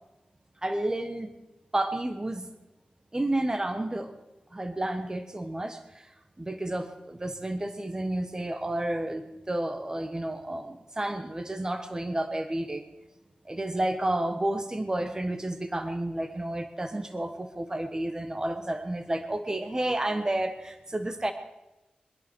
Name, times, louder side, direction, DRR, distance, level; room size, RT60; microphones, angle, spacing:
voice 1, 0.6-1.3 1.7-2.5 3.1-4.1 4.5-6.1 6.4-9.2 9.5-12.8 13.4-21.3, right 1 dB, 25° right, 8 dB, 1.3 m, -31 dB
23.0 x 11.0 x 4.6 m, 1.0 s
wide cardioid pair, 70°, 3 cm